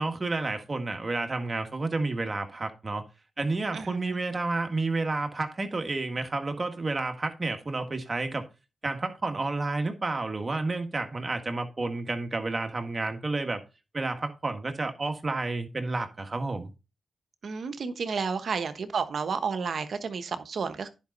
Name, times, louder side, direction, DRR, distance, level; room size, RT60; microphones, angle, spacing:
voice 1, 0.0-3.0 3.4-8.5 8.8-13.6 13.9-16.7, right 3 dB, 40° right, 1.7 m, -30 dB
voice 2, 3.7-4.2 17.4-20.9, right 5 dB, 70° right, 1.0 m, -31 dB
10.5 x 5.4 x 4.0 m
cardioid pair, 60°, 0 cm